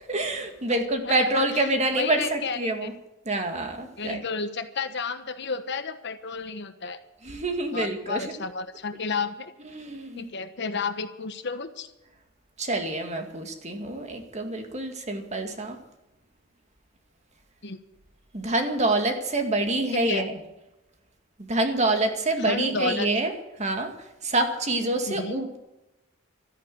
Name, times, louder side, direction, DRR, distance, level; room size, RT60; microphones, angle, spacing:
voice 1, 0.1-2.9 3.3-4.2 7.2-8.2 9.7-10.3 12.6-15.8 18.3-20.4 21.5-23.3 23.6-23.9 24.2-25.6, right 2 dB, 35° right, 5 dB, 2.1 m, -26 dB
voice 2, 1.0-2.9 4.0-7.0 7.7-9.5 10.2-11.9 17.6-17.8 20.1-20.2 22.4-23.1 25.1-25.4, left 4 dB, 60° left, 9 dB, 1.3 m, -32 dB
13.5 x 10.5 x 9.2 m, 0.94 s
head